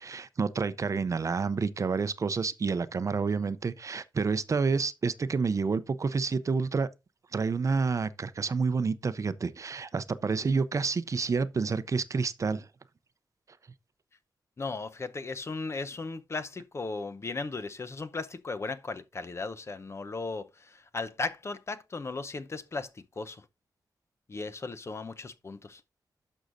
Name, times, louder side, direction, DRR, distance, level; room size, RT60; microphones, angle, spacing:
voice 1, 0.0-6.9 7.3-12.7, right 4 dB, 40° right, 0.6 m, -29 dB
voice 2, 14.6-23.4 24.3-25.8, left 3 dB, 35° left, 0.8 m, -36 dB
11.5 x 6.3 x 2.6 m
wide cardioid pair, 135°, 8 cm